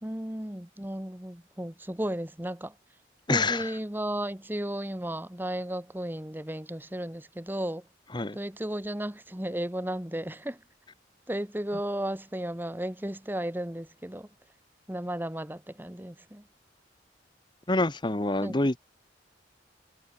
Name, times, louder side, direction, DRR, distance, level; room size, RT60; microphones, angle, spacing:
voice 1, 0.0-2.7 3.3-7.8 8.3-10.6 11.3-14.3 14.9-16.4 18.4-18.5, right 1 dB, 10° right, 1.2 m, -34 dB
voice 2, 3.3-3.7 8.1-8.4 17.7-18.8, left 2 dB, 25° left, 1.1 m, -26 dB
head